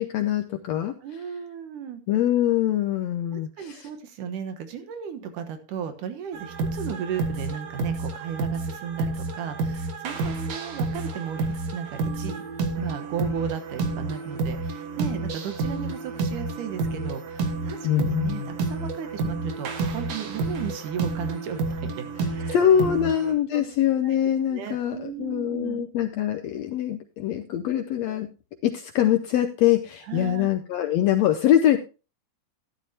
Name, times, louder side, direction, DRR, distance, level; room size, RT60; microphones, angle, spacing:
voice 1, 0.0-0.9 2.1-3.9 17.8-18.5 22.5-28.3 28.6-31.8, left 11 dB, 75° left, 6 dB, 1.6 m, -23 dB
voice 2, 1.0-2.0 3.3-11.4 11.7-12.4 12.8-22.6 22.9-23.1 23.5-23.7 24.0-24.2 24.5-25.9 30.1-30.5, right 7 dB, 75° right, 8 dB, 2.7 m, -35 dB
sound 1, 6.3-23.3, right 3 dB, 55° right, 2.4 m, -30 dB
13.0 x 11.0 x 2.8 m, 0.32 s
omnidirectional pair, 3.7 m